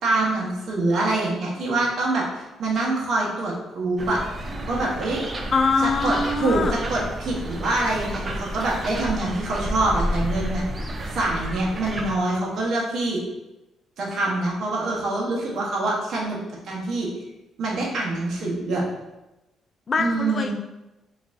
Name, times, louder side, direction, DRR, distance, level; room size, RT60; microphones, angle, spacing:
voice 1, 0.0-4.2 4.7-5.2 6.0-10.6 11.1-13.2 14.0-16.4 16.6-17.1 17.6-18.8 20.0-20.5, right 2 dB, 65° right, -3 dB, 1.1 m, -25 dB
sound 1, 4.0-12.2, equal, 35° right, 0.6 m, -31 dB
voice 2, 5.5-6.7 19.9-20.5, left 4 dB, 40° left, 6 dB, 0.4 m, -23 dB
3.9 x 3.5 x 2.6 m, 0.98 s
cardioid pair, 90°, 0 cm